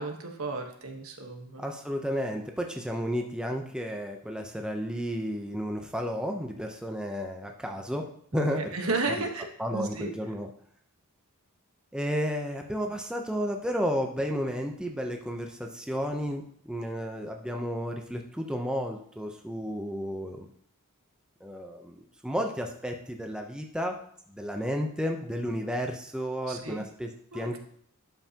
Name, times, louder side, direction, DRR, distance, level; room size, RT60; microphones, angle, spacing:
voice 1, 0.0-1.6 8.3-10.1 26.5-26.8 27.3-27.6, right 3 dB, 70° right, 3 dB, 1.3 m, -33 dB
voice 2, 1.6-8.7 9.6-10.5 11.9-20.5 21.4-24.0 24.3-27.6, equal, 5° right, 2 dB, 0.7 m, -32 dB
12.0 x 5.6 x 2.9 m, 0.63 s
head